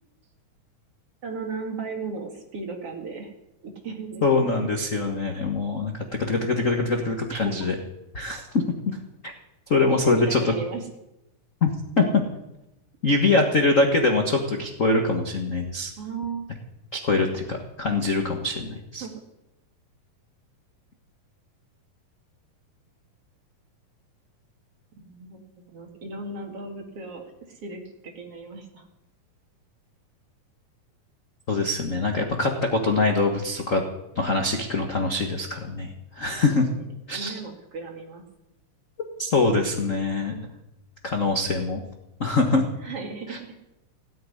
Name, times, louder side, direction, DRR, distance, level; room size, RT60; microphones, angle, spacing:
voice 1, 1.2-3.3 3.6-4.5 7.3-7.5 9.9-10.8 16.0-16.4 19.0-19.1 25.0-25.4 25.7-28.9 36.4-36.8 37.1-38.2 40.1-40.6 42.8-43.6, right 4 dB, 50° right, 2 dB, 3.0 m, -36 dB
voice 2, 4.2-7.7 8.1-8.6 9.2-9.3 9.7-10.5 11.6-11.7 12.0-12.2 13.0-15.9 16.9-19.0 31.5-33.8 34.1-35.9 36.2-36.7 37.1-37.3 39.2-40.3 41.0-41.8 42.2-42.6 43.3-43.4, left 3 dB, 45° left, 2 dB, 1.0 m, -23 dB
17.5 x 7.8 x 9.8 m, 0.89 s
omnidirectional pair, 3.8 m